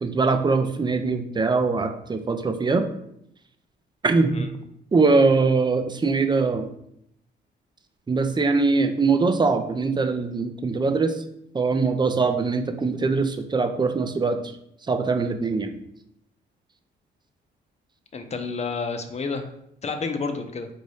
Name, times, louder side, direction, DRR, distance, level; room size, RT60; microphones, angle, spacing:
voice 1, 0.0-2.8 4.0-4.5 4.9-6.7 8.1-11.1 11.5-14.4 14.9-15.8, right 4 dB, 20° right, 7 dB, 0.5 m, -22 dB
voice 2, 18.1-19.5 19.8-20.7, left 4 dB, 35° left, 7 dB, 0.7 m, -30 dB
4.0 x 2.7 x 4.8 m, 0.75 s
cardioid pair, 90°, 20 cm